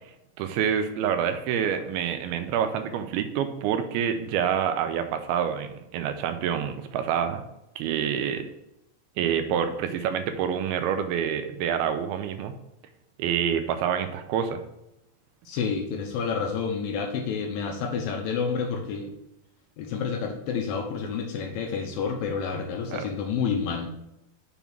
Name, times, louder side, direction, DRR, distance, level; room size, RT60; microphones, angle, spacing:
voice 1, 0.4-7.4 7.8-8.5 9.2-12.5 13.2-14.6 22.9-23.1, right 8 dB, 85° right, 8 dB, 2.4 m, -27 dB
voice 2, 15.5-19.1 19.8-23.9, left 6 dB, 75° left, 2 dB, 2.3 m, -29 dB
7.1 x 3.6 x 5.8 m, 0.86 s
omnidirectional pair, 4.6 m